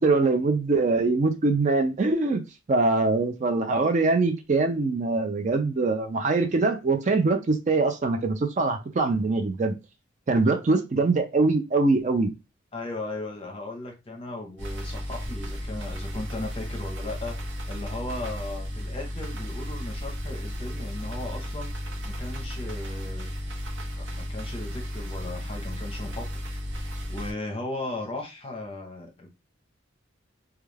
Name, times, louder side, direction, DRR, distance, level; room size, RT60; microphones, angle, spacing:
voice 1, 0.0-2.4 2.7-9.7 10.3-12.3, right 3 dB, 40° right, 0.4 m, -23 dB
voice 2, 12.7-21.7 22.0-23.3 23.9-26.3 27.1-29.3, left 2 dB, 30° left, 0.7 m, -36 dB
sound 1, 14.6-27.3, equal, 70° right, 0.8 m, -34 dB
2.3 x 2.2 x 3.2 m
head